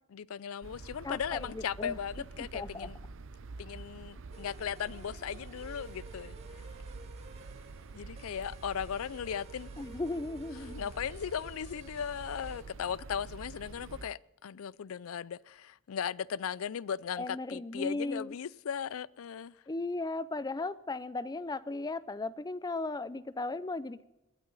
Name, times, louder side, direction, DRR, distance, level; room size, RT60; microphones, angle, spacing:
voice 1, 0.1-3.0 3.6-6.4 7.9-9.7 10.5-19.6, left 8 dB, 70° left, 0.4 m, -37 dB
sound 1, 0.6-14.1, right 3 dB, 65° right, 0.6 m, -47 dB
voice 2, 1.0-2.0 2.4-2.9 9.8-10.9 17.2-18.3 19.7-24.0, left 2 dB, 20° left, 0.5 m, -36 dB
sound 2, 4.3-12.6, right 3 dB, 30° right, 2.0 m, -55 dB
21.0 x 12.5 x 4.0 m
head